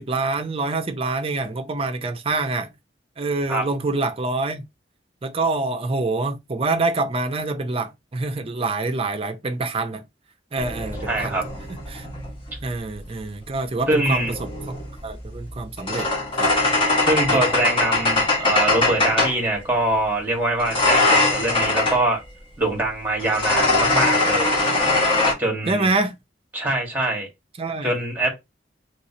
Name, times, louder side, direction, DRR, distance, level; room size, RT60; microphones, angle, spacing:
voice 1, 0.0-2.7 3.2-4.6 5.2-10.0 10.5-11.4 11.7-12.1 12.6-14.5 15.0-16.1 16.4-16.5 17.3-17.4 25.7-26.1 27.6-27.9, right 3 dB, 30° right, 0.5 m, -26 dB
sound 1, 10.6-12.7 13.9-19.5 20.6-22.1 23.2-25.3, left 2 dB, 30° left, 1.1 m, -22 dB
voice 2, 11.0-11.4 13.9-14.3 17.0-22.2 22.6-24.5 25.4-25.9 26.5-27.3 27.8-28.3, right 1 dB, 10° right, 1.4 m, -23 dB
3.2 x 3.0 x 2.8 m
head